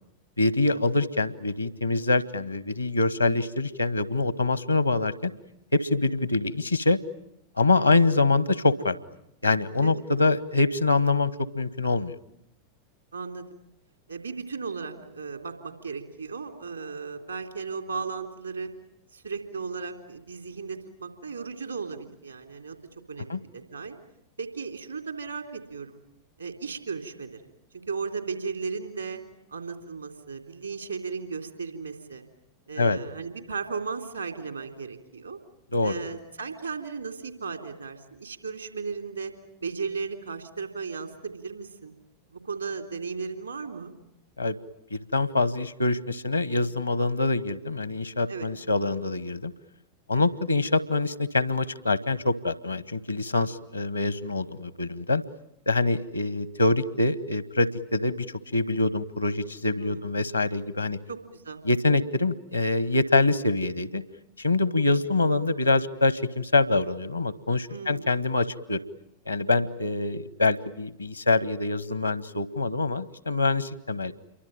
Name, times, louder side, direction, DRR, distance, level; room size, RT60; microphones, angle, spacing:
voice 1, 0.4-5.3 5.7-7.0 7.6-9.0 9.4-12.1 23.3-23.4 32.8-33.0 35.7-36.0 44.4-44.6 44.9-49.5 50.1-55.2 55.7-61.0 61.6-64.0 64.4-68.8 69.3-74.1, left 2 dB, 85° left, 18 dB, 1.1 m, -25 dB
voice 2, 7.7-8.0 9.8-10.0 13.1-13.6 14.1-18.7 19.1-22.8 23.1-24.0 24.4-26.0 26.4-27.4 27.9-29.2 29.5-32.3 32.7-35.4 35.8-39.3 39.6-41.9 42.3-43.9 48.3-48.5 50.1-50.3 59.8-60.1 61.1-61.6 67.7-68.2, right 5 dB, 80° right, 6 dB, 3.3 m, -36 dB
28.0 x 23.5 x 9.0 m, 0.79 s
figure-of-eight pair, 90°, 0 cm